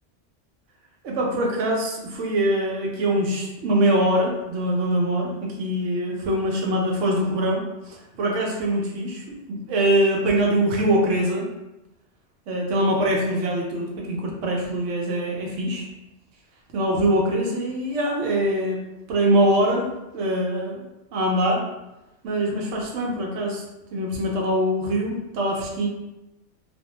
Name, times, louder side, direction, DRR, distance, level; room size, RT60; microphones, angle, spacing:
voice 1, 1.0-11.5 12.5-15.9 16.7-18.8 19.1-19.8 20.1-20.8 21.1-21.6 22.2-23.6 23.9-25.9, right 1 dB, 80° right, -2 dB, 1.0 m, -23 dB
2.5 x 2.1 x 2.8 m, 0.95 s
omnidirectional pair, 1.3 m